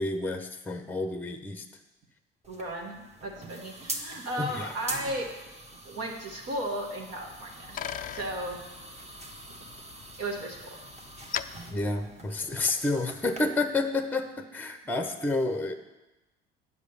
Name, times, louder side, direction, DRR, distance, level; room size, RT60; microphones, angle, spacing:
voice 1, 0.0-1.7 4.4-4.7 11.7-15.7, left 2 dB, 5° left, 7 dB, 0.8 m, -30 dB
sound 1, 2.4-13.4, right 1 dB, 20° right, 1.4 m, -44 dB
voice 2, 2.5-5.3 5.8-7.8 8.1-8.6 10.2-10.8, right 1 dB, 55° right, 0 dB, 1.4 m, -35 dB
Bicycle, 7.1-12.8, left 10 dB, 30° left, 0.4 m, -41 dB
8.5 x 5.0 x 6.9 m, 1.0 s
hypercardioid pair, 60°, 29 cm